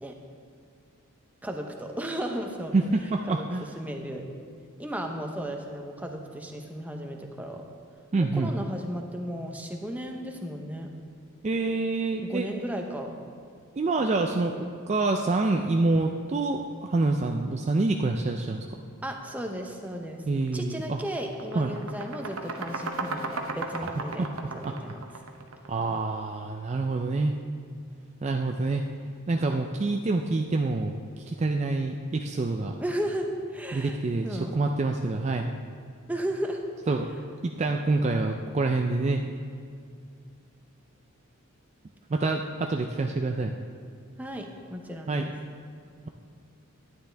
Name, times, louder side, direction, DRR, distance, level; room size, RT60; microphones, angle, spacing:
voice 1, 1.4-2.7 3.3-3.5 3.8-4.2 4.8-7.6 8.2-10.9 12.2-13.2 19.0-20.2 20.5-25.1 32.8-34.0 34.2-34.5 36.1-36.6 44.2-45.3, equal, 5° right, 2 dB, 0.7 m, -34 dB
voice 2, 2.7-3.7 8.1-8.5 11.4-12.5 13.8-18.8 20.3-21.0 21.6-21.7 23.8-23.9 24.2-24.7 25.7-27.4 28.2-28.9 29.3-32.7 33.7-34.3 34.5-35.5 36.9-37.1 37.4-39.2 42.1-43.6 45.1-45.3, right 3 dB, 30° right, 3 dB, 0.3 m, -27 dB
sound 1, 20.4-20.6 21.0-25.9, right 3 dB, 70° right, 0.8 m, -35 dB
11.5 x 9.6 x 3.4 m, 2.3 s
head